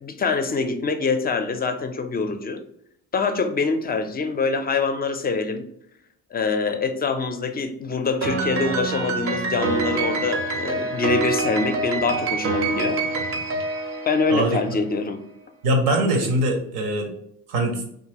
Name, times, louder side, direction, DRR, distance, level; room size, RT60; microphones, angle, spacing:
voice 1, 0.0-2.6 3.1-5.6 6.3-13.0 14.1-15.2, left 4 dB, 25° left, 7 dB, 0.4 m, -24 dB
Piano, 8.2-14.7, right 3 dB, 35° right, 0.5 m, -26 dB
voice 2, 15.6-17.1 17.5-17.8, right 1 dB, 75° right, 3 dB, 0.8 m, -22 dB
2.8 x 2.4 x 2.8 m, 0.71 s
hypercardioid pair, 50°, 41 cm